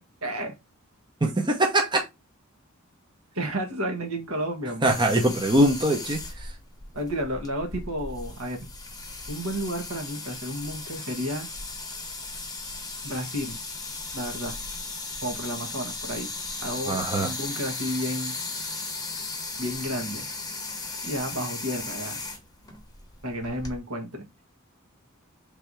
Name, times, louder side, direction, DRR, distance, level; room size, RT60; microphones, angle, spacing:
voice 1, 0.2-0.6 3.3-4.9 6.9-8.7 9.3-11.5 13.0-13.6 14.1-14.6 15.2-16.3 16.6-18.3 19.6-20.3 21.0-22.2 23.2-24.2, equal, 75° right, 1.3 m, -32 dB
voice 2, 1.2-2.0 4.8-6.5 16.9-17.3, right 1 dB, 20° right, 0.7 m, -22 dB
sound 1, 4.9-23.8, left 3 dB, 20° left, 1.0 m, -36 dB
3.3 x 2.7 x 4.6 m
head